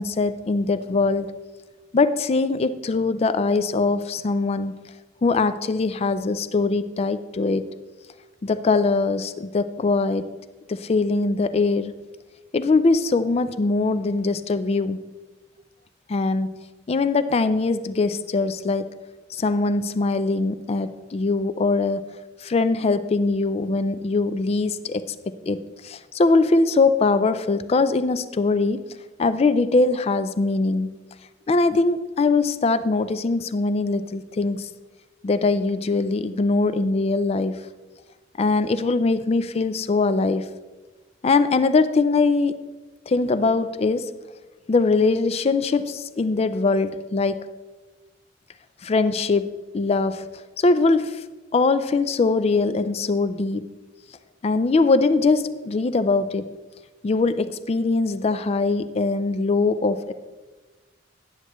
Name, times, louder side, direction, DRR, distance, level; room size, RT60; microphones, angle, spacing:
voice 1, 0.0-1.3 1.9-4.7 5.2-7.7 8.4-10.3 10.7-11.9 12.5-15.0 16.1-16.6 16.9-18.9 19.3-22.0 22.4-28.8 29.2-31.0 31.5-34.7 35.2-37.6 38.4-40.5 41.2-42.5 43.1-44.1 44.7-47.4 48.8-50.3 50.6-51.2 51.5-53.7 54.4-56.5 57.0-60.1, left 3 dB, 35° left, 13 dB, 0.4 m, -22 dB
9.8 x 7.8 x 3.1 m, 1.2 s
head